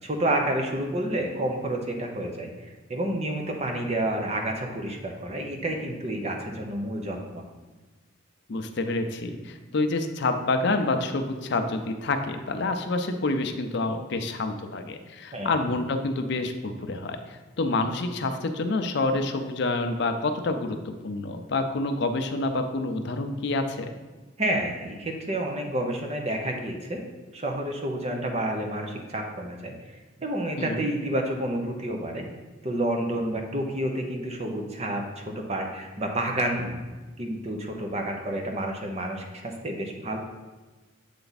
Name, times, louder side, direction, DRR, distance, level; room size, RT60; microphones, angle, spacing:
voice 1, 0.0-2.5 2.9-7.4 15.3-15.6 24.4-27.0 27.3-29.8 30.2-32.3 32.6-36.8 37.2-40.2, right 1 dB, 30° right, 3 dB, 0.7 m, -29 dB
voice 2, 8.5-23.9 30.6-30.9, left 2 dB, 60° left, 6 dB, 0.5 m, -28 dB
8.0 x 3.4 x 4.0 m, 1.3 s
head